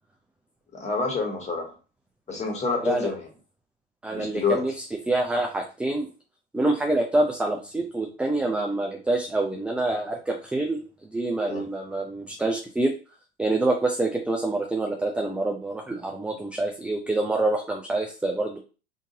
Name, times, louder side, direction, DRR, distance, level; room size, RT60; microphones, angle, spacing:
voice 1, 0.7-1.7 2.3-3.3 4.1-4.6 11.5-11.7, left 4 dB, 20° left, 1 dB, 1.5 m, -28 dB
voice 2, 4.0-6.1 6.5-12.9 13.4-18.6, right 2 dB, 5° right, 1 dB, 0.4 m, -26 dB
3.6 x 2.8 x 2.7 m, 0.34 s
figure-of-eight pair, 80°, 33 cm